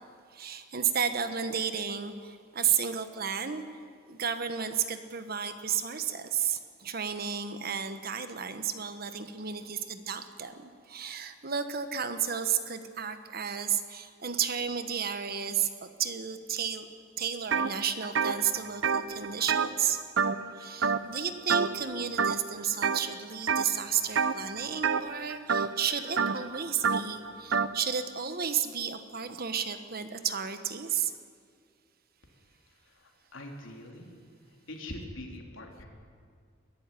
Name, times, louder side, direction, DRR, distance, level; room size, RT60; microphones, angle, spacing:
voice 1, 0.3-16.9 17.2-20.0 20.5-31.1, right 7 dB, 50° right, 9 dB, 1.3 m, -32 dB
sound 1, 17.5-17.7 18.0-20.5 20.8-21.2 21.5-21.9 22.2-23.0 23.5-23.8 24.1-27.8, right 6 dB, 75° right, 0.8 m, -28 dB
voice 2, 32.7-34.1 34.4-35.9, left 1 dB, 80° left, 2 dB, 3.2 m, -44 dB
22.5 x 12.0 x 9.9 m, 2.1 s
head